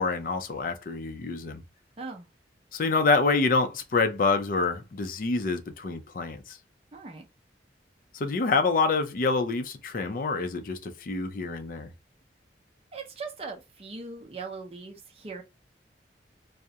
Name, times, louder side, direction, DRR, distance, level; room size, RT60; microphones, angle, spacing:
voice 1, 0.0-1.6 2.7-6.6 8.1-11.9, left 4 dB, 50° left, 0.4 m, -27 dB
voice 2, 2.0-2.3 6.9-7.3 12.9-15.4, right 4 dB, 35° right, 0.5 m, -40 dB
2.3 x 2.0 x 2.7 m
head